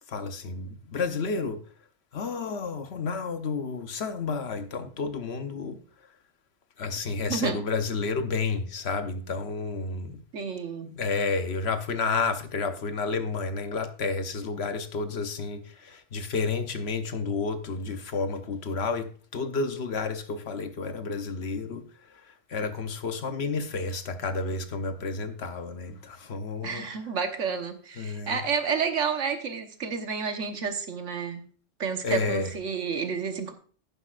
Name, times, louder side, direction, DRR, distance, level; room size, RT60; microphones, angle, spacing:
voice 1, 0.1-1.6 2.1-5.8 6.8-10.2 10.9-21.9 22.1-26.9 28.0-28.4 32.0-32.5, left 4 dB, 60° left, 1.1 m, -31 dB
voice 2, 7.3-7.6 10.3-10.9 26.6-31.4 31.8-33.5, right 6 dB, 85° right, 1.5 m, -30 dB
10.5 x 10.0 x 2.4 m
omnidirectional pair, 1.2 m